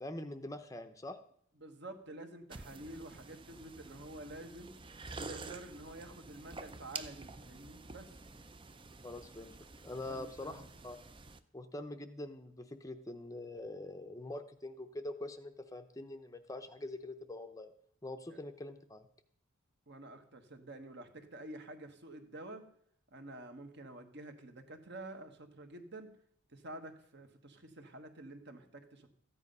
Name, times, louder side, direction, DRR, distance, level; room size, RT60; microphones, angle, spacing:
voice 1, 0.0-1.2 9.0-9.6 9.8-11.0 11.5-17.7 18.0-19.1, left 1 dB, 15° left, 8 dB, 0.6 m, -44 dB
voice 2, 1.6-4.7 5.1-8.1 10.1-10.7 19.9-22.7 23.1-26.1 26.5-29.1, right 1 dB, 55° right, 6 dB, 1.4 m, -49 dB
sound 1, 2.5-11.4, right 3 dB, 25° right, 0.5 m, -49 dB
14.0 x 9.7 x 5.4 m, 0.66 s
head